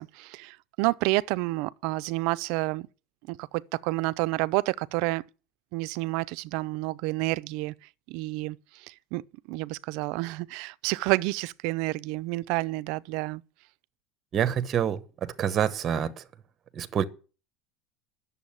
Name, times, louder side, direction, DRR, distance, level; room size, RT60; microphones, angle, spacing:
voice 1, 0.0-2.9 3.3-5.2 5.7-7.7 8.1-8.6 8.9-9.2 9.5-13.4, right 21 dB, 65° right, 0.5 m, -29 dB
voice 2, 14.3-16.2 16.7-17.0, right 9 dB, 30° right, 0.9 m, -27 dB
10.5 x 7.1 x 8.6 m
cardioid pair, 150°, 0 cm